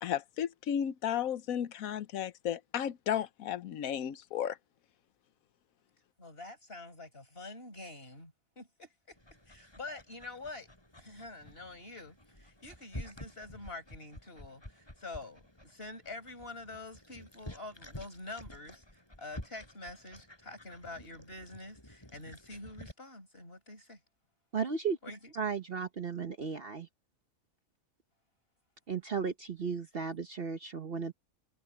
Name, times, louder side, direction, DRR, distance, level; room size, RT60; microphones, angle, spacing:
voice 1, 0.0-4.6, left 9 dB, 80° left, 1.2 m, -34 dB
voice 2, 6.2-9.2 9.5-10.7 11.0-18.8 19.2-24.0 25.0-25.4, left 2 dB, 45° left, 6.7 m, -46 dB
Dog, 9.1-22.9, left 1 dB, 20° left, 4.8 m, -50 dB
voice 3, 24.5-25.0 25.4-26.9 28.9-31.1, right 6 dB, 45° right, 1.1 m, -35 dB
omnidirectional pair, 1.4 m